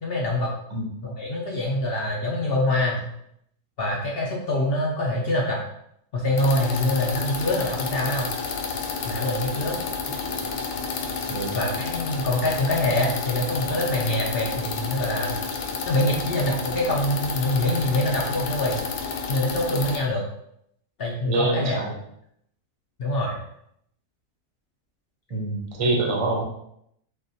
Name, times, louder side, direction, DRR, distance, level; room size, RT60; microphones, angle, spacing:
voice 1, 0.0-0.5 1.0-3.1 3.8-5.6 6.1-8.3 9.0-9.8 11.5-15.4 15.8-18.8 19.3-20.2 21.0-21.8 23.0-23.4, left 1 dB, 60° left, -2 dB, 0.6 m, -25 dB
sound 1, 6.4-20.0, left 5 dB, 80° left, 1.2 m, -30 dB
voice 2, 21.3-21.9 25.3-26.4, right 2 dB, 35° right, 0 dB, 0.5 m, -25 dB
3.8 x 3.4 x 2.7 m, 0.74 s
omnidirectional pair, 1.7 m